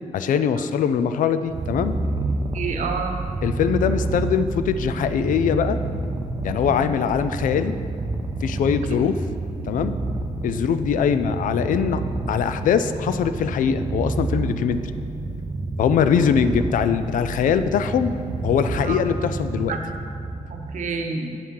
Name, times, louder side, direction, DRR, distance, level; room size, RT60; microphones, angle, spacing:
voice 1, 0.1-2.0 3.4-5.8 6.4-7.8 8.4-9.1 9.7-10.0 10.4-12.0 12.3-14.8 15.8-18.2 18.4-19.8, left 7 dB, 80° left, 11 dB, 0.4 m, -22 dB
Purr, 1.5-20.8, right 2 dB, 30° right, 0.5 m, -29 dB
voice 2, 2.5-3.1 6.6-6.9 8.6-8.7 16.1-16.3 18.8-19.0 19.7-19.8 20.5-21.4, right 4 dB, 65° right, 3 dB, 0.9 m, -29 dB
8.6 x 5.7 x 4.7 m, 2.4 s
wide cardioid pair, 155°, 14 cm